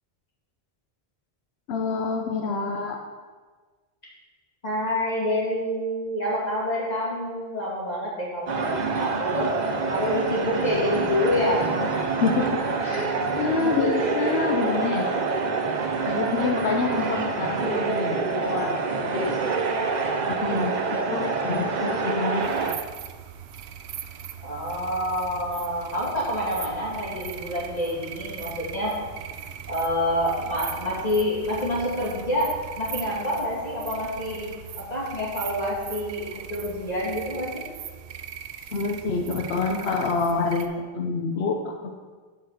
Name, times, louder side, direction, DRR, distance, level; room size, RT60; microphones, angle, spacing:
voice 1, 1.7-3.0 12.2-15.1 16.1-19.4 20.3-22.5 38.7-41.9, left 4 dB, 90° left, 3 dB, 1.0 m, -27 dB
voice 2, 4.6-9.5 9.9-11.7 24.4-29.0 29.7-37.6, left 1 dB, 40° left, -6 dB, 2.7 m, -27 dB
sound 1, 8.5-22.8, right 4 dB, 50° right, 0.7 m, -26 dB
sound 2, 22.4-40.7, right 8 dB, 85° right, 0.8 m, -39 dB
8.6 x 4.8 x 6.3 m, 1.4 s
omnidirectional pair, 1.0 m